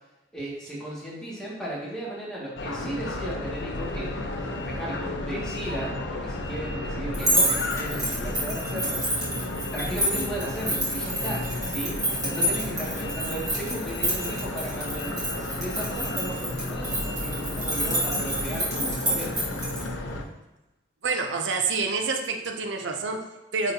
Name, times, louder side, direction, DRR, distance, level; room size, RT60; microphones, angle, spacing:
voice 1, 0.3-4.1 4.6-9.1 9.7-19.4, right 1 dB, 5° left, -8 dB, 1.9 m, -35 dB
sound 1, 2.6-20.2, left 2 dB, 85° left, 0.7 m, -32 dB
sound 2, 7.1-19.8, right 1 dB, 20° right, 1.4 m, -29 dB
voice 2, 21.0-23.7, right 4 dB, 85° right, 4 dB, 0.6 m, -28 dB
9.3 x 4.2 x 2.8 m, 1.0 s
head